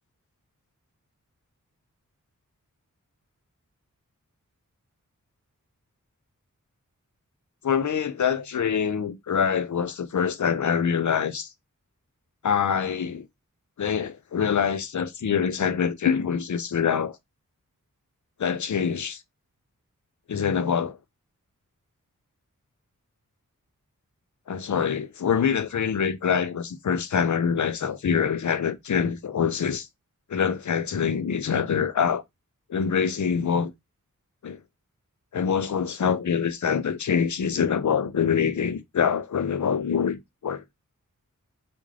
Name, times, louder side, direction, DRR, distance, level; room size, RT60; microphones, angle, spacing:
voice 1, 7.6-11.5 12.4-13.3 13.8-17.2 18.4-19.2 20.3-21.0 24.5-29.9 30.3-32.2 32.7-33.7 34.4-34.6 35.3-40.6, left 7 dB, 65° left, 0.6 m, -25 dB
3.5 x 2.6 x 3.2 m
wide cardioid pair, 70°, 32 cm